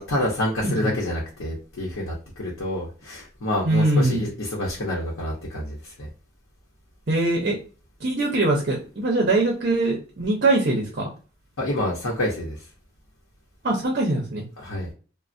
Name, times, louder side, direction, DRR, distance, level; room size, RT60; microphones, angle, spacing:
voice 1, 0.0-6.1 11.6-12.7 14.6-14.9, left 1 dB, 85° left, -4 dB, 0.8 m, -28 dB
voice 2, 0.6-0.9 3.6-4.3 7.1-7.6 8.0-11.1 13.6-14.4, right 2 dB, 50° right, 0 dB, 0.6 m, -22 dB
3.1 x 2.1 x 2.6 m, 0.37 s
head